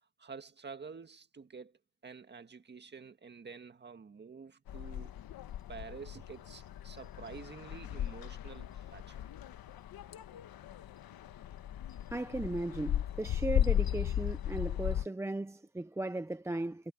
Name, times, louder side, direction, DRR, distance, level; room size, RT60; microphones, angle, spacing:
voice 1, 0.2-5.1 5.7-9.3, right 5 dB, 20° right, 1.8 m, -49 dB
sound 1, 4.7-15.1, left 11 dB, 45° left, 1.5 m, -36 dB
voice 2, 12.1-16.9, right 2 dB, 5° right, 0.6 m, -37 dB
cardioid pair, 120°, 49 cm